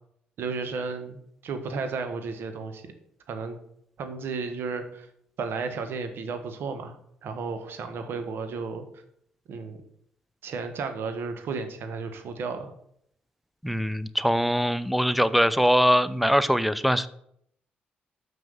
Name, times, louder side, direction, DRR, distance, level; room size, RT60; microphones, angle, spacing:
voice 1, 0.4-2.9 3.3-3.6 4.0-5.1 5.4-6.9 7.2-8.8 9.5-9.8 10.4-12.7, right 4 dB, 65° right, 8 dB, 1.5 m, -33 dB
voice 2, 13.6-17.1, equal, ahead, 15 dB, 0.6 m, -22 dB
6.2 x 5.8 x 7.1 m, 0.70 s
supercardioid pair, 55°, 4 cm